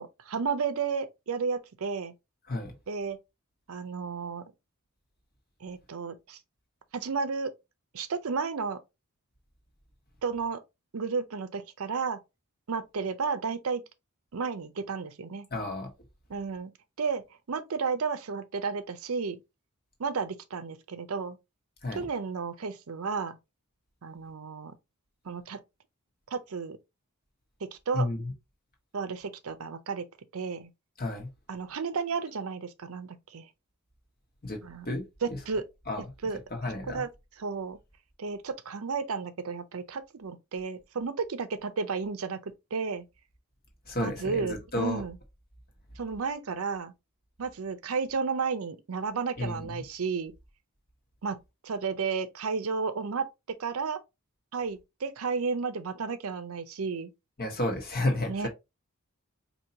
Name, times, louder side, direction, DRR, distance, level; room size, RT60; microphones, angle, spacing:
voice 1, 0.0-2.1 2.9-3.2 3.7-4.4 5.6-6.4 6.9-7.5 7.9-8.8 10.2-10.6 10.9-12.2 12.7-13.8 14.3-15.5 16.3-16.7 17.0-19.4 20.0-21.4 21.9-23.4 24.0-24.8 25.2-25.6 26.3-26.8 27.6-28.1 28.9-30.1 30.3-30.7 31.5-33.5 34.6-34.9 35.2-35.6 36.2-36.4 36.9-37.1 37.4-37.8 38.2-43.1 44.0-45.2 46.0-46.9 47.4-50.3 51.2-54.0 54.5-57.1 58.3-58.5, right 5 dB, 70° right, 0.6 m, -32 dB
voice 2, 15.5-15.9 21.8-22.1 27.9-28.3 31.0-31.3 34.4-35.1 35.9-36.0 36.6-37.0 43.9-45.0 49.4-49.7 57.4-58.5, left 1 dB, 45° left, 1.4 m, -31 dB
4.6 x 2.8 x 2.8 m
head